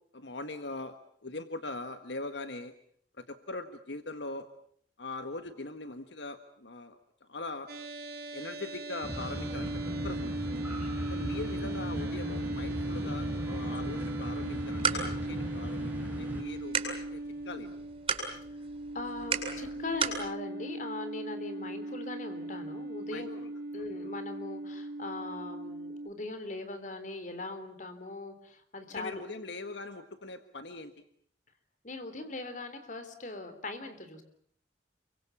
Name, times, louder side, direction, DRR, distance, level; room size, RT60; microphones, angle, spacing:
voice 1, 0.1-1.0 1.2-2.7 3.2-4.5 5.0-7.7 8.3-9.7 10.0-10.5 11.1-17.2 17.4-17.7 23.1-23.5 28.9-30.9, left 2 dB, 75° left, 8 dB, 1.6 m, -41 dB
sound 1, 7.7-26.1, right 2 dB, 55° right, 3.8 m, -38 dB
sound 2, 9.0-16.4, equal, 10° right, 6.4 m, -37 dB
sound 3, 14.4-20.3, right 5 dB, 30° right, 7.6 m, -36 dB
voice 2, 18.9-23.4 23.7-29.2 31.8-34.2, left 2 dB, 45° left, 9 dB, 3.6 m, -40 dB
29.5 x 24.0 x 7.3 m, 0.63 s
head